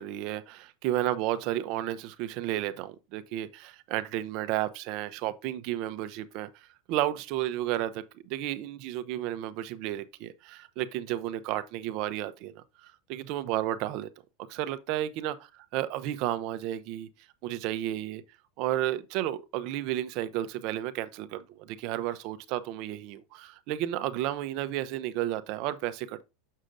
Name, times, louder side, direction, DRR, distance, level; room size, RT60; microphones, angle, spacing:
voice 1, 0.0-14.1 14.5-15.3 15.7-17.1 17.4-18.2 18.6-26.2, right 13 dB, 55° right, 0.6 m, -32 dB
6.4 x 6.4 x 2.6 m
supercardioid pair, 130°, 0 cm